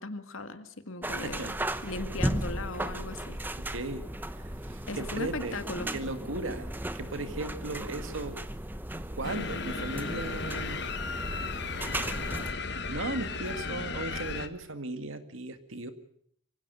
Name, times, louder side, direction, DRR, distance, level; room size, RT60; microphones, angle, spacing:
voice 1, 0.0-1.5 1.8-3.4 4.9-5.9, left 3 dB, 85° left, 9 dB, 1.9 m, -37 dB
sound 1, 1.0-12.5, right 1 dB, 10° right, 0.8 m, -36 dB
voice 2, 1.2-1.7 3.6-5.6 5.9-8.4 8.9-10.8 12.6-15.9, right 2 dB, 75° right, 9 dB, 2.1 m, -37 dB
sound 2, 3.8-13.5, equal, 30° left, 4.5 m, -49 dB
sound 3, 9.2-14.5, left 4 dB, 55° left, 1.5 m, -35 dB
24.5 x 16.5 x 8.2 m, 0.66 s
head